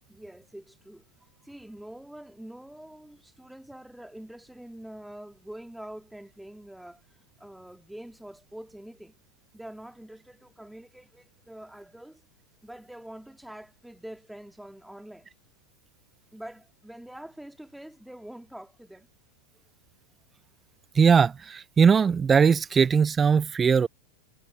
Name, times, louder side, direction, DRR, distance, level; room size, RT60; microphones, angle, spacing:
voice 1, 0.1-1.0 1.4-9.2 9.5-12.2 12.6-15.3 16.3-19.1, right 1 dB, ahead, 1.9 m, -45 dB
voice 2, 20.9-23.9, right 6 dB, 20° right, 0.4 m, -20 dB
figure-of-eight pair, 90°, 0 cm